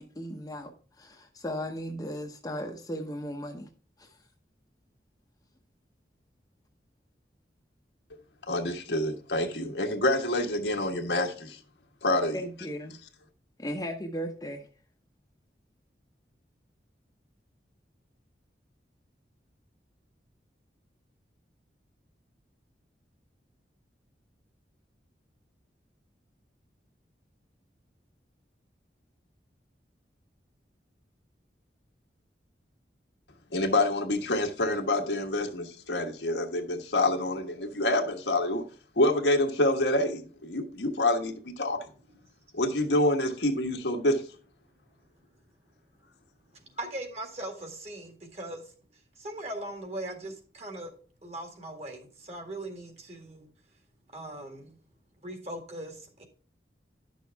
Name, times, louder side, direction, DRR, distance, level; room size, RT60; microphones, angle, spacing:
voice 1, 0.0-3.7 4.0-4.2 12.3-12.9 13.6-14.7, equal, 20° left, 0.8 m, -36 dB
voice 2, 8.5-11.6 12.0-12.4 33.5-38.6 39.0-41.8 42.5-44.2, left 1 dB, 80° left, 1.4 m, -27 dB
voice 3, 46.5-50.9 51.2-53.5 54.1-54.8 55.2-56.2, right 1 dB, 40° right, 1.9 m, -40 dB
11.0 x 6.2 x 3.4 m
head